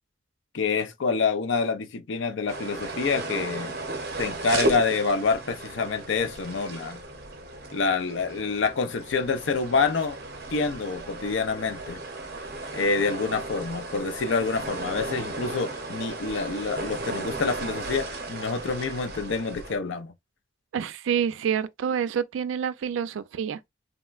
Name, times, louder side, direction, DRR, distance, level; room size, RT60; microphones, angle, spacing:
voice 1, 0.5-3.7 4.2-7.0 7.7-10.2 10.5-12.0 12.7-20.1, left 4 dB, 80° left, 0.5 m, -27 dB
sound 1, 2.5-19.8, right 2 dB, 50° right, 0.7 m, -35 dB
voice 2, 20.7-23.7, right 8 dB, 85° right, 0.3 m, -28 dB
3.5 x 2.1 x 2.3 m
head